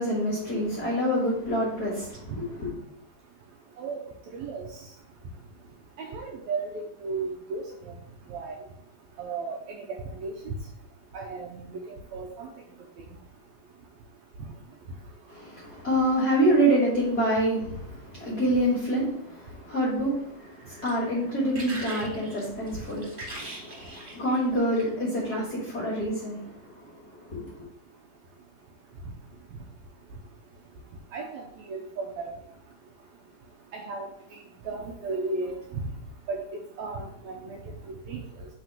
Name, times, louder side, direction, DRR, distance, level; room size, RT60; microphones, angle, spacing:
voice 1, 0.0-2.3 2.6-2.7 15.3-26.9 27.3-27.6, right 1 dB, 45° left, -5 dB, 1.3 m, -27 dB
voice 2, 4.3-4.6 6.0-7.6 8.3-8.5 9.2-9.9 10.2-10.5 11.1-12.5 31.1-31.4 31.7-32.3 33.7-34.1 34.6-35.8 36.3-36.4 36.8-37.6 38.1-38.5, right 4 dB, 80° right, 0 dB, 1.7 m, -34 dB
sound 1, 20.4-25.1 25.8-26.0, right 1 dB, 25° right, 1.7 m, -42 dB
4.7 x 3.9 x 5.6 m, 0.72 s
omnidirectional pair, 3.8 m